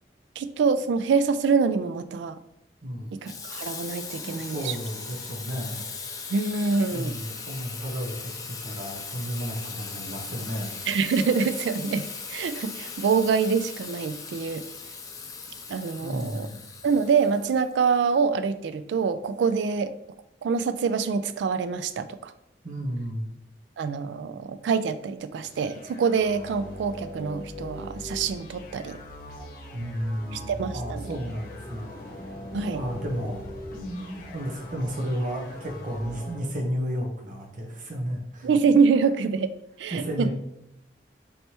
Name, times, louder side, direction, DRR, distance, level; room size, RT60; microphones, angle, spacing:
voice 1, 0.4-2.4 3.2-4.8 6.3-7.1 10.9-12.0 12.3-14.6 15.7-16.5 16.8-19.9 20.4-22.3 23.8-29.0 30.3-31.1 32.5-32.8 38.4-39.5 39.8-40.3, right 5 dB, 85° right, 12 dB, 0.3 m, -25 dB
voice 2, 2.8-3.2 4.2-5.9 6.9-10.7 16.0-16.6 22.6-23.3 29.7-31.9 32.2-33.5 33.7-38.5 39.9-40.3, equal, 50° right, 1 dB, 0.9 m, -32 dB
Water tap faucet / Sink (filling or washing), 3.2-18.0, left 5 dB, 20° left, 0.4 m, -39 dB
sound 1, 25.4-36.5, left 1 dB, 50° left, 0.8 m, -40 dB
4.2 x 3.3 x 2.9 m, 0.80 s
head